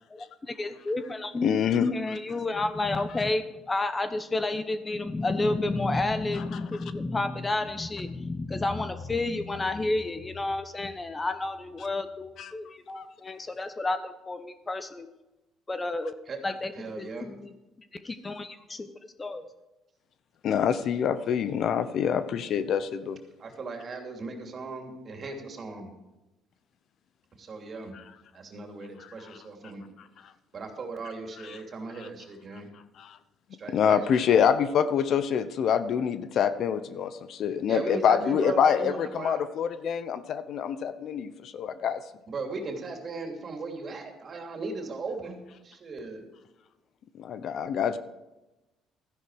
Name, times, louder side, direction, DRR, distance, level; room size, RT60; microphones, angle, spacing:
voice 1, 0.1-15.1 15.7-16.1 16.4-17.5 18.0-18.9 19.2-19.5, left 2 dB, 25° left, 10 dB, 0.9 m, -31 dB
voice 2, 1.4-1.9 12.4-12.5 13.0-13.1 20.4-23.2 27.9-28.0 29.0-29.4 31.4-31.6 31.9-32.1 33.0-33.2 33.7-42.0 47.2-48.0, left 8 dB, 60° left, 13 dB, 0.8 m, -26 dB
voice 3, 16.8-17.3 23.4-25.9 27.4-27.9 28.3-29.8 30.5-32.7 33.6-34.0 37.7-39.4 42.3-45.4 45.6-46.3, right 3 dB, 40° right, 4 dB, 2.8 m, -37 dB
13.0 x 10.5 x 4.9 m, 1.0 s
supercardioid pair, 85°, 0 cm